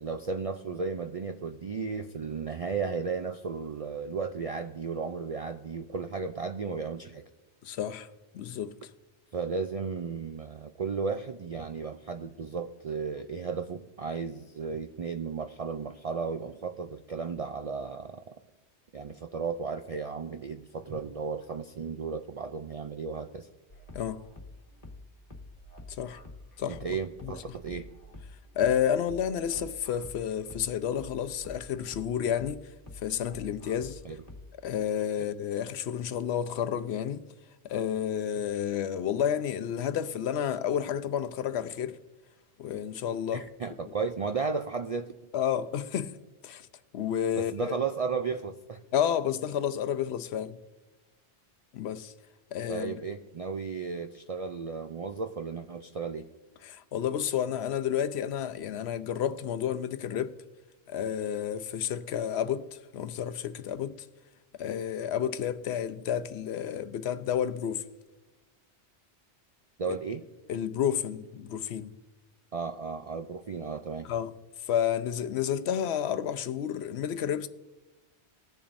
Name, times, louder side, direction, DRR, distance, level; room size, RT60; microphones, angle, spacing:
voice 1, 0.0-7.2 9.3-18.3 18.9-23.5 26.7-27.9 34.0-34.2 43.3-45.1 47.3-48.8 52.7-56.3 69.8-70.2 72.5-74.1, right 5 dB, 60° right, 0.3 m, -34 dB
voice 2, 7.6-8.1 8.3-8.7 23.9-24.2 26.0-26.2 26.6-26.8 27.2-27.4 28.6-32.7 33.0-34.0 34.6-37.2 37.6-42.0 42.6-43.4 45.3-46.1 46.4-46.7 46.9-47.7 48.9-50.6 51.7-52.1 52.5-52.9 56.6-60.4 60.9-64.1 64.6-67.8 69.9-70.0 70.5-71.9 74.0-74.3 74.6-77.5, left 9 dB, 75° left, 0.8 m, -30 dB
sound 1, 23.7-34.7, left 2 dB, 35° left, 1.5 m, -48 dB
20.0 x 7.0 x 2.6 m
omnidirectional pair, 1.1 m